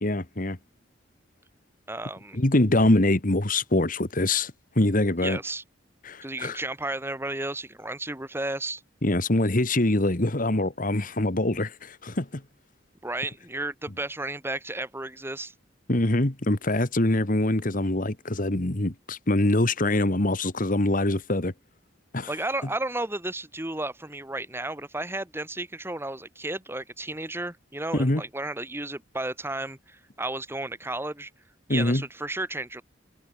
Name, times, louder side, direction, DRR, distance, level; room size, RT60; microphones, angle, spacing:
voice 1, 0.0-0.6 2.3-5.4 6.0-6.6 9.0-12.3 15.9-21.5 22.1-22.3 28.0-28.2 31.7-32.0, left 1 dB, 45° left, 1.8 m, -24 dB
voice 2, 1.9-2.4 5.2-5.6 6.2-8.8 13.0-15.5 22.3-31.3 31.7-32.8, right 2 dB, 10° right, 2.2 m, -33 dB
head